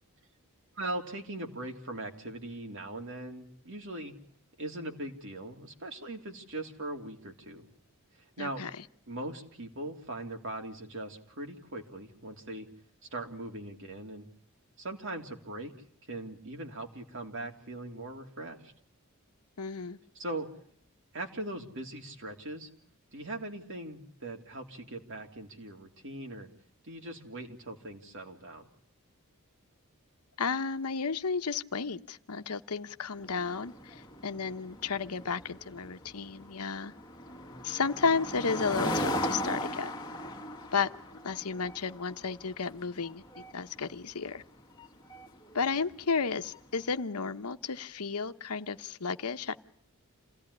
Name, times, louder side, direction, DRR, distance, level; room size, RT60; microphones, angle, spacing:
voice 1, 0.8-4.1 4.6-7.7 8.2-8.6 9.1-12.7 13.1-14.3 14.8-15.7 16.1-18.7 20.1-20.5 21.1-22.7 23.1-26.5 26.8-28.7, right 1 dB, 60° right, 3 dB, 3.1 m, -40 dB
voice 2, 8.4-8.7 19.6-20.0 30.4-36.9 37.6-39.9 40.7-40.9 41.2-43.2 43.5-44.4 45.5-49.6, left 5 dB, 80° left, 10 dB, 1.0 m, -33 dB
sound 1, 33.2-46.7, left 1 dB, 20° left, 1.9 m, -38 dB
28.0 x 17.0 x 9.9 m, 0.65 s
head